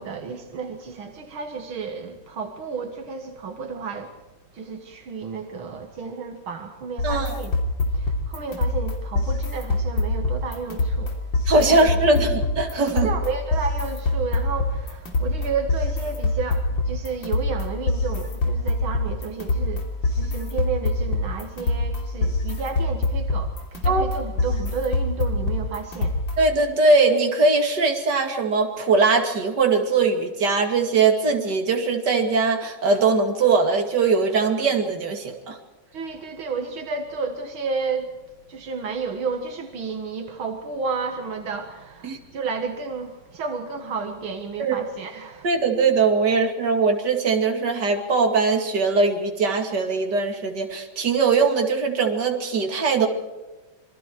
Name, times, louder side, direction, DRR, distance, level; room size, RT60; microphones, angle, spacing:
voice 1, 0.0-4.1 4.5-7.6 7.9-11.1 11.6-11.9 13.0-23.5 23.8-26.2 35.9-38.1 38.5-45.5, right 5 dB, 80° right, 2.4 m, -31 dB
sound 1, 7.0-26.6, left 2 dB, 65° left, 3.9 m, -25 dB
voice 2, 7.0-7.3 11.5-13.1 23.8-24.0 26.4-35.6 42.0-42.2 44.6-44.8 45.4-53.1, right 4 dB, 55° right, 3.0 m, -21 dB
27.0 x 23.0 x 4.6 m
omnidirectional pair, 2.2 m